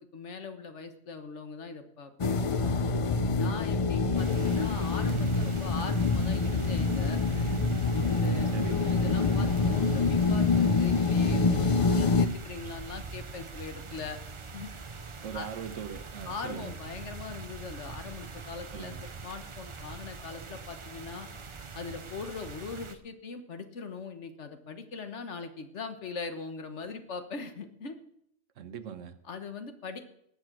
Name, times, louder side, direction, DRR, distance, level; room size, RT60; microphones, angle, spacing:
voice 1, 0.0-2.9 3.4-7.6 8.1-14.2 14.5-14.7 15.3-15.5 16.2-21.3 21.7-27.9 29.2-30.0, left 5 dB, 70° left, 1.5 m, -41 dB
sound 1, 2.2-12.3, left 3 dB, 40° left, 0.4 m, -26 dB
voice 2, 4.0-4.4 8.5-9.0 15.2-16.7 18.7-19.0 28.6-29.2, right 8 dB, 80° right, 1.3 m, -41 dB
sound 2, 4.1-22.9, right 4 dB, 30° right, 0.6 m, -43 dB
19.0 x 6.8 x 6.1 m
omnidirectional pair, 1.3 m